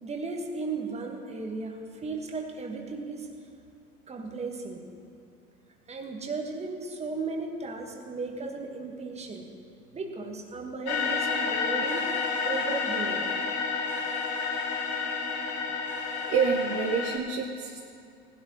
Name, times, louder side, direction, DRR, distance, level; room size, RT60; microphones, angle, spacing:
voice 1, 0.0-3.3 4.1-4.8 5.9-9.5 9.9-12.1 12.4-13.3 14.4-14.7, right 3 dB, 15° right, 2 dB, 1.7 m, -35 dB
sound 1, 10.9-17.2, left 5 dB, 50° left, 2.0 m, -30 dB
voice 2, 16.2-17.8, right 5 dB, 30° right, 0 dB, 1.2 m, -27 dB
19.0 x 12.0 x 3.1 m, 2.5 s
figure-of-eight pair, 90°, 46 cm